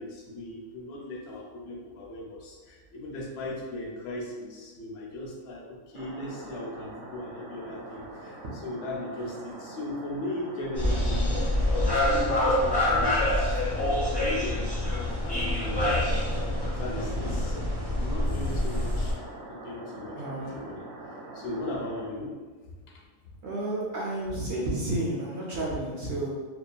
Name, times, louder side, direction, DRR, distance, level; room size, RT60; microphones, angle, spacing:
voice 1, 0.0-14.7 15.2-16.0 16.8-19.2 19.4-20.8 21.3-22.3 22.9-23.0, left 1 dB, 60° left, -2 dB, 0.7 m, -38 dB
sound 1, 5.9-22.1, right 1 dB, 90° right, 1.1 m, -43 dB
sound 2, 10.7-19.1, left 1 dB, 40° left, 0.3 m, -26 dB
voice 2, 20.2-20.5 23.4-26.3, right 1 dB, 65° right, -5 dB, 0.8 m, -31 dB
2.8 x 2.3 x 2.2 m, 1.4 s
omnidirectional pair, 1.5 m